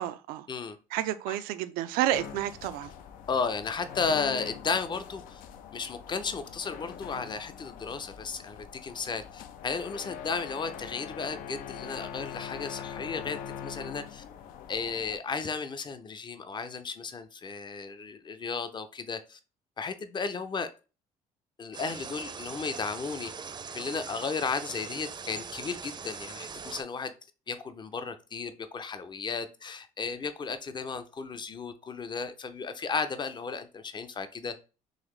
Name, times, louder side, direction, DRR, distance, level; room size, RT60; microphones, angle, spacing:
voice 1, 0.0-0.5 0.9-2.9, right 13 dB, 90° right, 0.4 m, -30 dB
sound 1, 2.1-15.2, left 8 dB, 80° left, 0.5 m, -43 dB
voice 2, 3.3-5.4 5.7-14.2 14.7-19.4 19.8-20.7 21.6-23.3 23.7-27.1 27.5-34.5, left 5 dB, 30° left, 0.6 m, -34 dB
sound 2, 21.7-26.8, right 5 dB, 30° right, 0.5 m, -41 dB
3.9 x 2.9 x 3.2 m
cardioid pair, 85°, 14 cm